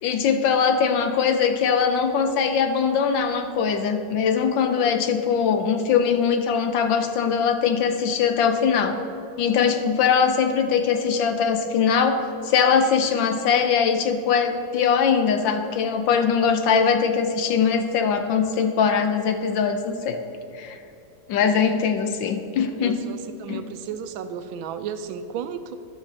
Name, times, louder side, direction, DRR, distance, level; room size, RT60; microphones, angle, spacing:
voice 1, 0.0-9.0 9.4-12.2 12.4-20.2 20.6-20.8 21.3-23.0 23.5-23.6, left 6 dB, 75° left, 7 dB, 1.5 m, -21 dB
voice 2, 22.8-25.8, right 7 dB, 85° right, 10 dB, 1.4 m, -34 dB
13.0 x 12.0 x 2.9 m, 2.8 s
omnidirectional pair, 2.1 m